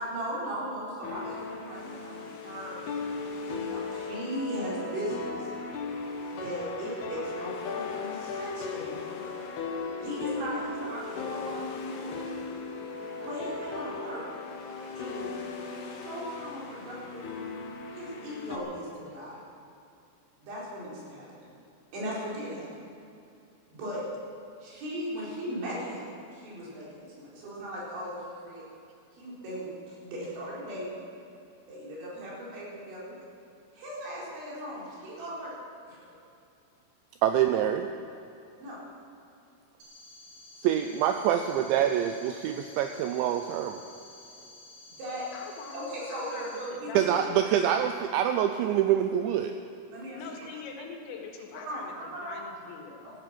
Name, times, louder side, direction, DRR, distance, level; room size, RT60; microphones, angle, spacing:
voice 1, 0.0-5.5 6.3-9.4 10.0-12.2 13.2-14.2 15.0-15.3 15.8-17.2 17.9-19.4 20.4-21.3 21.9-22.7 23.8-24.0 24.6-26.0 26.3-28.6 29.1-31.0 31.7-33.2 33.7-35.5 35.9-36.1 38.6-38.8 45.0-45.3 45.7-47.2 47.5-47.6 49.9-50.2 51.5-51.8 52.1-52.4 53.0-53.1, equal, 65° right, -6 dB, 6.7 m, -38 dB
sound 1, 1.0-18.6, left 4 dB, 65° left, 3.1 m, -37 dB
voice 2, 37.2-37.9 40.6-43.8 47.0-49.5, right 10 dB, 85° right, 6 dB, 2.7 m, -26 dB
sound 2, 39.8-46.7, left 2 dB, 50° right, 4.4 m, -51 dB
voice 3, 45.3-47.6 50.2-53.0, left 5 dB, 85° left, 1 dB, 4.5 m, -43 dB
16.5 x 13.5 x 6.1 m, 2.6 s
omnidirectional pair, 5.8 m